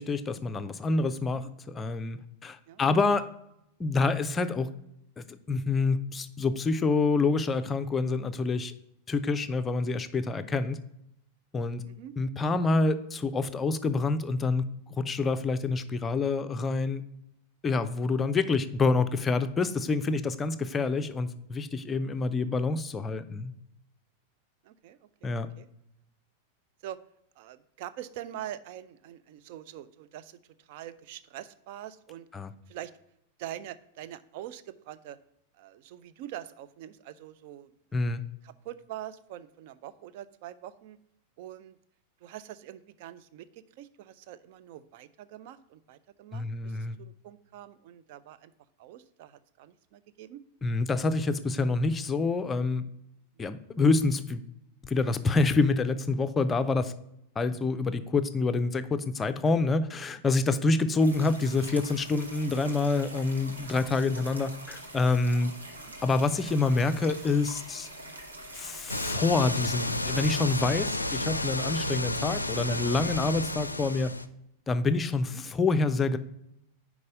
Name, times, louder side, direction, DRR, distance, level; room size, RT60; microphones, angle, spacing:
voice 1, 0.0-3.3 3.8-4.7 5.2-8.7 9.1-10.8 11.5-11.8 12.2-14.7 15.0-17.0 17.6-23.5 25.2-25.5 32.3-32.5 37.9-38.2 46.3-47.0 50.6-52.8 53.4-54.4 54.8-56.9 57.4-65.5 66.0-67.9 68.5-74.1 74.7-76.2, left 3 dB, 20° left, 10 dB, 0.5 m, -27 dB
voice 2, 11.8-12.1 24.6-25.7 26.8-27.0 27.4-30.4 30.7-32.3 32.7-32.9 33.4-35.2 35.6-37.7 38.4-41.0 41.4-41.8 42.2-48.5 48.8-50.4 65.9-66.0 75.3-75.4, right 12 dB, 50° right, 14 dB, 0.4 m, -44 dB
sound 1, 61.0-70.6, right 1 dB, 80° right, 1.1 m, -44 dB
sound 2, 68.9-74.3, left 1 dB, 85° left, 0.4 m, -31 dB
5.4 x 4.8 x 6.3 m, 0.79 s
figure-of-eight pair, 90°, 0 cm